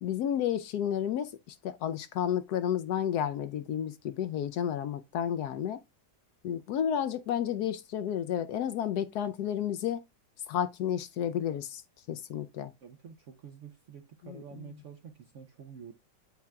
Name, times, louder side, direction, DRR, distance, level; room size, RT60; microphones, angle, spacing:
voice 1, 0.0-5.8 6.4-10.0 10.5-11.8 12.1-12.7 14.2-14.4, left 9 dB, 70° left, 1.0 m, -31 dB
voice 2, 12.8-15.9, right 7 dB, 65° right, 0.7 m, -48 dB
8.4 x 5.7 x 2.2 m
omnidirectional pair, 1.9 m